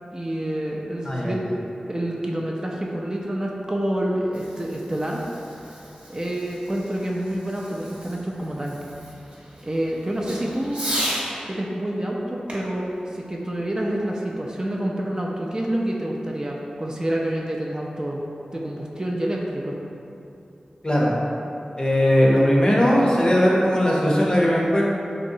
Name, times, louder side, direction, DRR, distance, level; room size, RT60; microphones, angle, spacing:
voice 1, 0.1-1.5 1.9-5.2 6.1-8.9 9.6-10.8 11.5-18.2 18.5-19.8, right 1 dB, 25° right, -2 dB, 0.3 m, -28 dB
voice 2, 1.1-1.4 20.8-21.1 21.8-24.9, equal, 30° left, -4 dB, 0.6 m, -19 dB
Fireworks, 4.2-11.3 12.5-14.1, equal, 50° right, 0.8 m, -36 dB
3.0 x 2.8 x 2.6 m, 2.8 s
cardioid pair, 45°, 3 cm